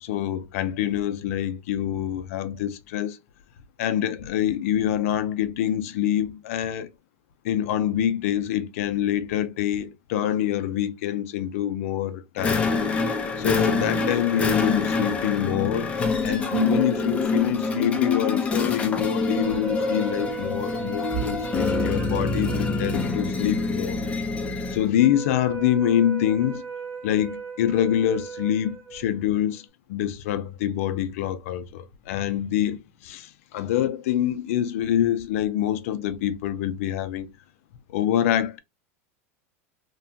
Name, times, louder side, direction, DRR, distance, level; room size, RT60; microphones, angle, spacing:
voice 1, 0.0-3.2 3.8-6.9 7.4-12.7 13.4-15.9 16.2-24.0 24.7-26.6 27.0-33.3 33.5-37.3 37.9-38.6, left 11 dB, 75° left, 0.5 m, -25 dB
sound 1, 12.4-24.9, left 4 dB, 15° left, 0.5 m, -26 dB
sound 2, 19.1-29.6, right 6 dB, 70° right, 1.5 m, -37 dB
2.9 x 2.2 x 2.7 m
supercardioid pair, 140°, 8 cm